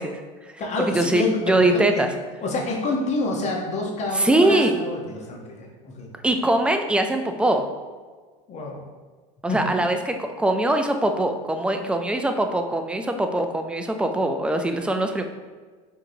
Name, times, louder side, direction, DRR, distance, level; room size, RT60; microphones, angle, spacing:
voice 1, 0.0-0.5 0.9-2.1 4.1-4.8 6.2-7.6 9.4-15.2, right 1 dB, 5° right, 6 dB, 0.3 m, -22 dB
voice 2, 0.6-2.0 2.4-6.1 8.5-8.8 9.5-9.6, left 2 dB, 35° left, 0 dB, 0.9 m, -27 dB
4.8 x 2.9 x 2.7 m, 1.4 s
supercardioid pair, 100°, 19 cm